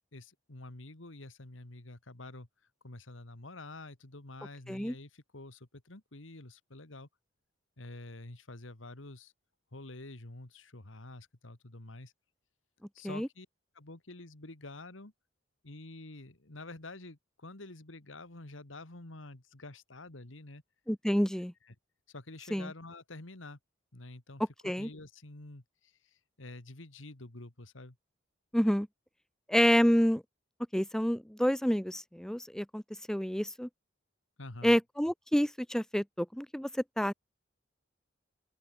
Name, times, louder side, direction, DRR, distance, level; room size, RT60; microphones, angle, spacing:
voice 1, 0.0-2.5 2.8-7.1 7.8-9.3 9.7-12.1 12.9-13.5 13.7-15.1 15.6-20.6 21.7-21.8 22.1-23.6 23.9-28.0 34.4-34.8, left 2 dB, 85° left, 2.2 m, -48 dB
voice 2, 20.9-21.5 22.5-22.7 24.6-24.9 28.5-28.9 29.5-30.2 30.7-32.8 33.1-33.7 34.6-37.1, equal, 5° left, 0.6 m, -28 dB
open air
head